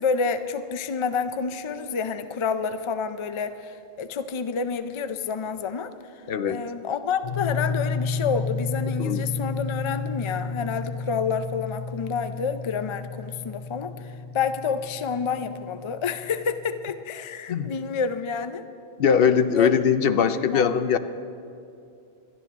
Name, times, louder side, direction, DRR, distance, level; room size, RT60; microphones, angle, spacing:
voice 1, 0.0-5.9 6.4-18.6 19.5-19.7 20.3-20.8, left 5 dB, 45° left, 10 dB, 0.4 m, -29 dB
voice 2, 6.3-6.6 9.0-9.2 17.5-17.7 19.0-21.0, left 7 dB, 65° left, 11 dB, 0.7 m, -21 dB
sound 1, 7.2-16.8, left 4 dB, 85° left, 3.2 m, -32 dB
21.0 x 12.5 x 3.6 m, 2.6 s
omnidirectional pair, 1.1 m